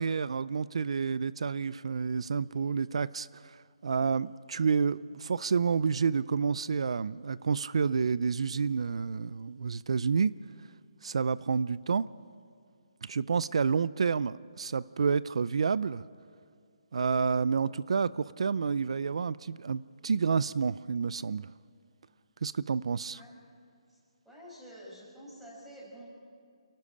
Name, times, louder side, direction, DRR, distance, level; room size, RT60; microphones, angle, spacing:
voice 1, 0.0-3.6 3.8-10.3 11.0-12.1 13.0-16.1 16.9-21.5 22.4-23.2, right 5 dB, 65° right, 19 dB, 0.5 m, -29 dB
voice 2, 24.2-26.1, equal, ahead, -6 dB, 5.5 m, -48 dB
28.0 x 12.0 x 8.5 m, 2.2 s
hypercardioid pair, 165°, 3 cm